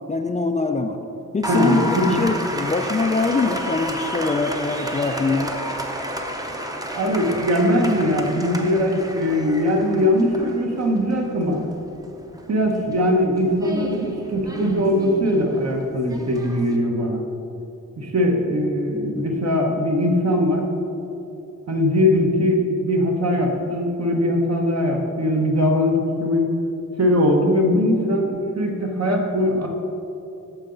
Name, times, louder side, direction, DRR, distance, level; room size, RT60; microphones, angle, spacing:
voice 1, 0.1-1.0 1.3-5.5, left 3 dB, 25° left, 4 dB, 0.3 m, -23 dB
Applause, 1.4-16.8, equal, 10° right, 0.7 m, -31 dB
voice 2, 1.5-2.2 6.9-11.6 12.5-17.2 18.0-20.7 21.7-26.4 27.0-29.7, left 1 dB, 50° right, 1 dB, 1.1 m, -21 dB
9.0 x 6.8 x 3.9 m, 2.8 s
wide cardioid pair, 120°, 32 cm